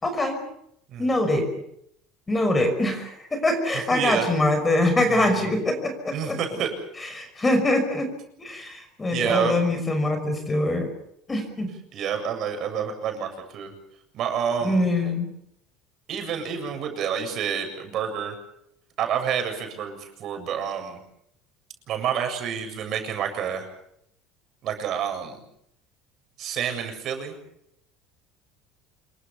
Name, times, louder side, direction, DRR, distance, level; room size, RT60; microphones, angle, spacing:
voice 1, 0.0-0.4 1.0-1.5 2.3-6.4 7.0-8.1 8.4-10.9 11.3-11.7 14.6-15.3, left 1 dB, 15° left, 7 dB, 5.6 m, -24 dB
voice 2, 3.7-4.3 5.2-5.6 6.1-6.7 9.1-9.6 11.9-13.7 14.1-14.8 16.1-18.4 19.0-21.0 21.9-23.7 24.6-25.4 26.4-27.3, right 8 dB, 45° right, 5 dB, 7.4 m, -28 dB
27.5 x 23.5 x 7.0 m, 0.75 s
cardioid pair, 140°, 0 cm